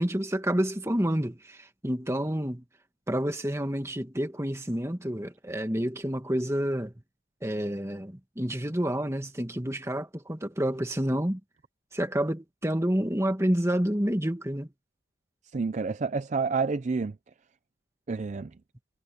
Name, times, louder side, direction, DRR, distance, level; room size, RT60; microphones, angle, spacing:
voice 1, 0.0-2.6 3.1-6.9 7.4-11.4 11.9-14.7, equal, 15° right, 1.7 m, -29 dB
voice 2, 15.5-17.2 18.1-18.5, right 4 dB, 35° right, 0.4 m, -29 dB
head